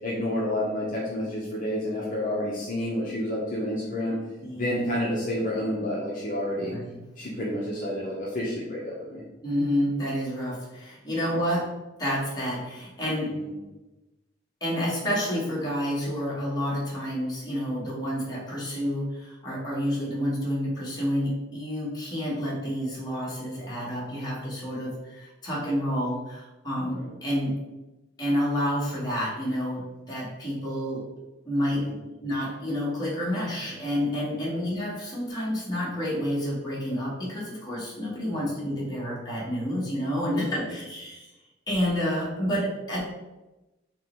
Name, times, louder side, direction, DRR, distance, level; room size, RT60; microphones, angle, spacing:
voice 1, 0.0-4.2 4.5-6.7 7.2-9.2 11.1-11.3 13.3-13.6 26.8-27.0 31.7-32.0 34.5-34.6 38.3-38.7 40.3-40.7, left 1 dB, 45° left, -6 dB, 0.8 m, -30 dB
voice 2, 4.4-4.8 6.6-7.0 9.4-13.4 14.6-27.6 28.2-31.1 31.4-31.9 32.2-41.3 41.7-43.0, equal, 20° left, -6 dB, 1.5 m, -29 dB
3.8 x 3.0 x 4.4 m, 1.0 s
head